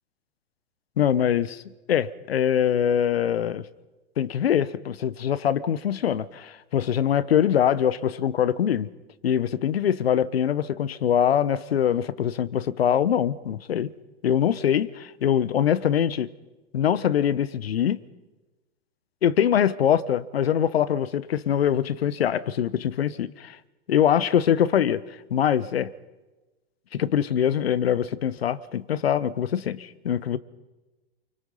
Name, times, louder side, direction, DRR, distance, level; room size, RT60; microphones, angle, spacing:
voice 1, 1.0-1.6 1.9-3.6 4.2-8.9 9.2-13.9 14.2-16.3 16.7-18.0 19.2-23.6 23.9-25.0 25.3-25.9 26.9-30.4, left 9 dB, 80° left, 1.0 m, -23 dB
28.0 x 24.5 x 5.5 m
hypercardioid pair, 110°, 30 cm